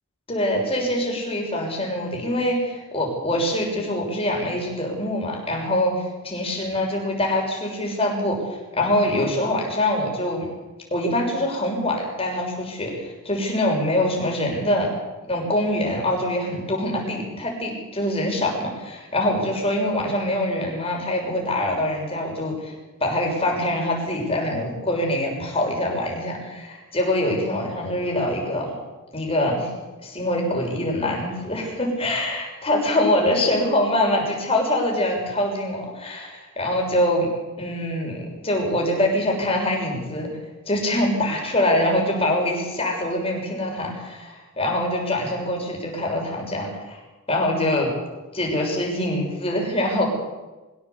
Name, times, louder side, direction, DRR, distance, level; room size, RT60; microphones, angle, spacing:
voice 1, 0.3-5.9 6.2-10.5 10.9-14.9 15.2-22.7 23.0-28.7 29.1-29.7 30.0-37.3 37.6-40.3 40.7-47.0 47.3-47.9 48.3-50.1, left 1 dB, 25° left, 0 dB, 6.6 m, -24 dB
23.5 x 16.5 x 8.3 m, 1.2 s
head